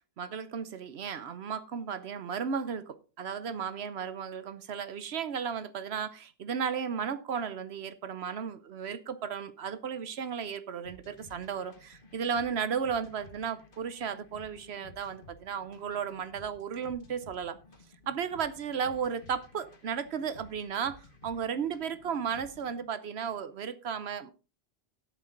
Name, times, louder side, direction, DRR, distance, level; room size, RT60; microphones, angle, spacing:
voice 1, 0.2-17.6 18.1-24.3, right 7 dB, 80° right, 13 dB, 1.0 m, -34 dB
sound 1, 10.8-22.9, left 2 dB, 55° left, 1.7 m, -55 dB
12.5 x 8.6 x 3.8 m, 0.33 s
omnidirectional pair, 1.1 m